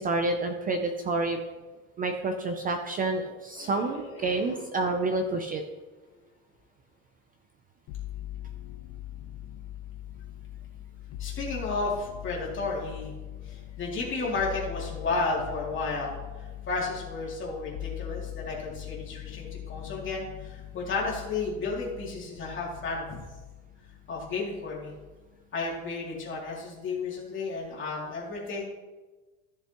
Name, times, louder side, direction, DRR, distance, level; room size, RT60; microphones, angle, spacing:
voice 1, 0.0-1.4 2.0-5.6, right 2 dB, 20° right, 5 dB, 0.3 m, -28 dB
voice 2, 3.6-4.6 11.2-13.1 13.4-16.2 16.7-23.2 24.1-24.9 25.5-28.7, left 3 dB, 25° left, -4 dB, 2.6 m, -33 dB
sound 1, 7.9-25.3 25.6-26.4, left 13 dB, 50° left, 0.5 m, -42 dB
14.5 x 6.7 x 2.9 m, 1.2 s
cardioid pair, 160°, 44 cm